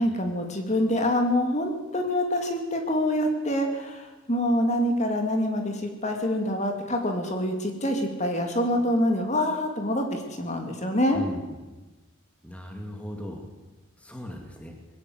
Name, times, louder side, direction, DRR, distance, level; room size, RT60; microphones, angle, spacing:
voice 1, 0.0-11.2, left 1 dB, 35° left, 4 dB, 2.6 m, -26 dB
voice 2, 11.1-11.6 12.4-13.5 14.0-14.7, equal, 5° left, 2 dB, 2.4 m, -37 dB
21.0 x 17.5 x 8.0 m, 1.1 s
head